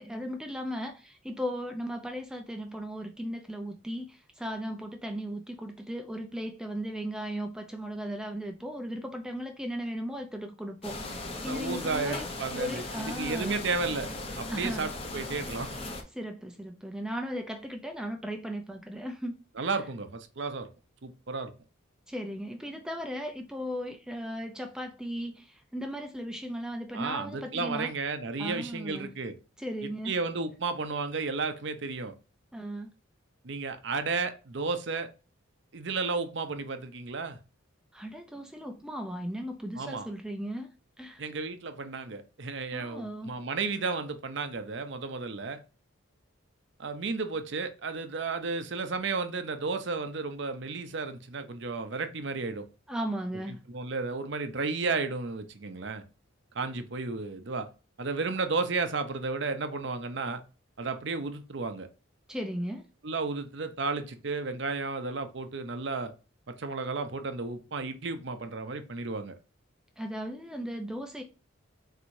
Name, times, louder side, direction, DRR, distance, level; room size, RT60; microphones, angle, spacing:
voice 1, 0.0-13.6 14.5-14.9 16.1-19.3 22.1-27.9 28.4-29.1 29.6-30.2 32.5-32.9 37.9-41.2 42.7-43.3 52.9-53.6 62.3-62.9 70.0-71.2, equal, 5° right, 0.4 m, -36 dB
sound 1, 10.8-16.0, left 2 dB, 30° left, 0.8 m, -38 dB
voice 2, 11.4-14.1 14.4-15.7 19.6-20.7 21.0-21.5 26.9-29.3 30.1-32.1 33.4-35.1 35.7-37.4 39.7-40.1 41.2-45.6 46.8-52.7 53.5-56.0 56.5-57.7 58.0-60.4 60.8-61.9 63.0-66.1 66.5-69.3, right 4 dB, 60° right, 0.6 m, -33 dB
4.6 x 4.1 x 2.6 m
head